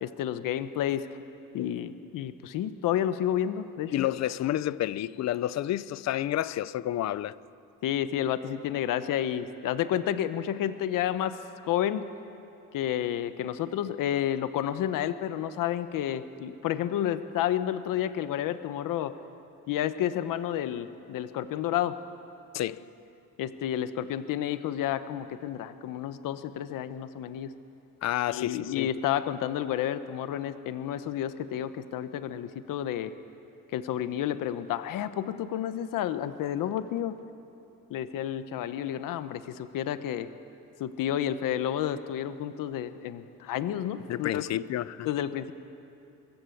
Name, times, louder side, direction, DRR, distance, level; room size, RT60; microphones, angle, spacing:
voice 1, 0.0-1.1 1.5-4.1 7.8-11.4 11.7-12.1 12.7-19.1 19.7-22.0 23.4-27.5 28.3-33.1 33.7-37.2 37.9-40.3 40.8-44.4 45.0-45.5, left 11 dB, 65° left, 1.0 m, -30 dB
voice 2, 3.9-7.3 22.5-22.8 28.0-28.9 44.1-45.1, left 13 dB, 50° left, 0.5 m, -30 dB
23.0 x 22.5 x 8.4 m
cardioid pair, 180°, 35 cm